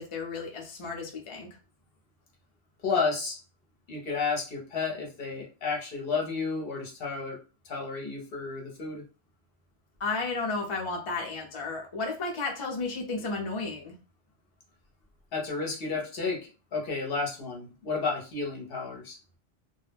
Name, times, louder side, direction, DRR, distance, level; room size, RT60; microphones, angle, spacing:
voice 1, 0.0-1.5 10.0-13.9, left 3 dB, 35° left, 0 dB, 0.5 m, -33 dB
voice 2, 2.8-3.4 3.9-7.4 7.6-9.0 15.3-19.2, left 4 dB, 60° left, 0 dB, 0.8 m, -32 dB
2.3 x 2.0 x 3.3 m, 0.33 s
omnidirectional pair, 1.2 m